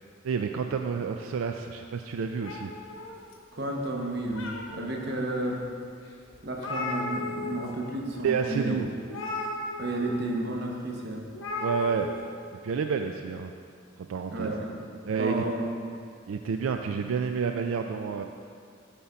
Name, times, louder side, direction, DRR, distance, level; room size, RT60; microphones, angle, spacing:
voice 1, 0.2-2.7 8.2-8.9 11.6-12.1 12.6-13.5 14.1-14.5 15.1-15.4 16.3-18.2, right 6 dB, 90° right, 5 dB, 0.4 m, -29 dB
sound 1, 2.4-3.6 4.1-5.0 5.6-5.7 6.0-6.1 6.3-7.7 8.0-8.2 9.1-10.1 11.3-12.2, left 2 dB, 80° left, 1.1 m, -35 dB
voice 2, 3.5-5.6 6.4-8.8 9.8-11.3 14.3-14.9 15.2-15.7, right 1 dB, 55° right, 0 dB, 1.0 m, -32 dB
8.4 x 3.7 x 6.9 m, 2.3 s
head